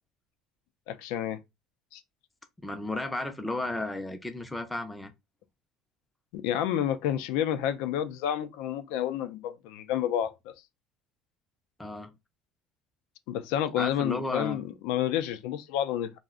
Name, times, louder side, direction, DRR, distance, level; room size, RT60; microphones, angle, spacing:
voice 1, 0.9-1.4 1.9-2.0 6.3-10.5 13.3-16.1, left 10 dB, 85° left, 0.4 m, -30 dB
voice 2, 2.6-5.1 11.8-12.1 13.8-14.6, left 2 dB, 5° left, 0.4 m, -33 dB
2.5 x 2.0 x 3.6 m
cardioid pair, 170°, 0 cm